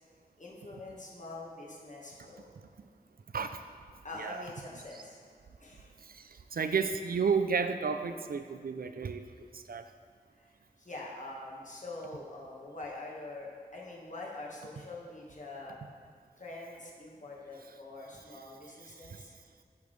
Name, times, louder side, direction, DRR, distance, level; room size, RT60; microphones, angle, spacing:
voice 1, 0.4-2.4 4.0-5.2 5.6-5.9 10.4-10.5 10.8-15.8 16.4-19.4, left 2 dB, 50° left, -3 dB, 1.5 m, -44 dB
voice 2, 6.5-9.8 19.1-19.2, right 5 dB, 70° right, 9 dB, 0.4 m, -32 dB
8.6 x 6.0 x 3.2 m, 2.1 s
wide cardioid pair, 50°, 16 cm